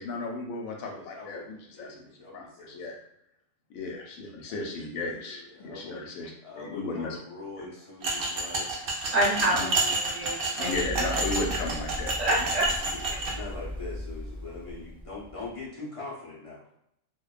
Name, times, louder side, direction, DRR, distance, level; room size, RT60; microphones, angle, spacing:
voice 1, 0.0-2.1 2.3-3.0 3.7-6.3 6.6-7.2 9.5-9.7 10.6-12.1, left 3 dB, 85° left, 1 dB, 1.0 m, -35 dB
voice 2, 0.9-2.8 5.2-6.1 6.4-8.8 12.8-16.7, left 3 dB, 55° left, -7 dB, 0.3 m, -43 dB
sound 1, 8.0-13.3, right 2 dB, 65° right, 0.5 m, -30 dB
voice 3, 9.1-11.1 12.2-12.7, right 1 dB, 35° right, -5 dB, 0.9 m, -27 dB
Run, 10.7-15.5, left 1 dB, 10° left, 0.7 m, -38 dB
2.4 x 2.1 x 2.3 m, 0.75 s
omnidirectional pair, 1.4 m